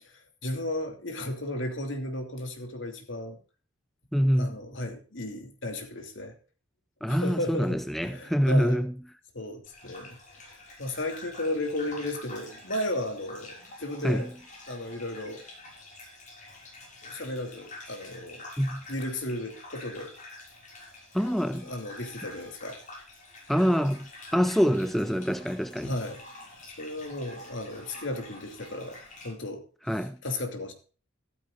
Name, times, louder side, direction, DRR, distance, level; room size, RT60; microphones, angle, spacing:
voice 1, 0.1-3.4 4.3-6.3 7.1-8.8 9.3-10.2 10.4-14.3 14.7-15.4 17.0-18.5 18.9-20.1 21.5-22.8 25.8-26.2 26.8-29.0 29.2-29.6 29.9-30.7, left 1 dB, 60° left, 3.0 m, -34 dB
voice 2, 4.1-4.6 7.0-8.9 14.0-14.2 18.6-18.8 21.1-21.7 23.5-25.9 29.9-30.2, equal, ahead, 0.5 m, -25 dB
Gurgling / Bathtub (filling or washing), 9.6-29.3, left 2 dB, 35° left, 6.3 m, -47 dB
14.5 x 13.5 x 2.5 m
head